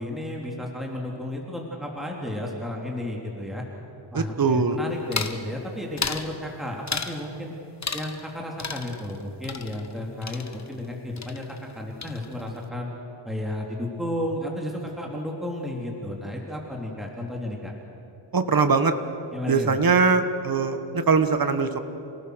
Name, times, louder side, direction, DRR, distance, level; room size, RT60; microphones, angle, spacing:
voice 1, 0.0-3.6 4.1-7.5 7.9-12.9 13.2-17.7 19.3-19.7, left 1 dB, ahead, -1 dB, 3.1 m, -33 dB
voice 2, 4.1-4.8 18.3-18.9 19.5-21.8, right 4 dB, 45° right, 9 dB, 1.6 m, -21 dB
sound 1, 5.1-5.4 6.0-6.3 6.9-7.2 7.8-8.3 8.6-10.9 11.2-11.7 12.0-12.6, left 5 dB, 35° left, 1.2 m, -33 dB
29.0 x 18.5 x 6.4 m, 3.0 s
wide cardioid pair, 95°, 49 cm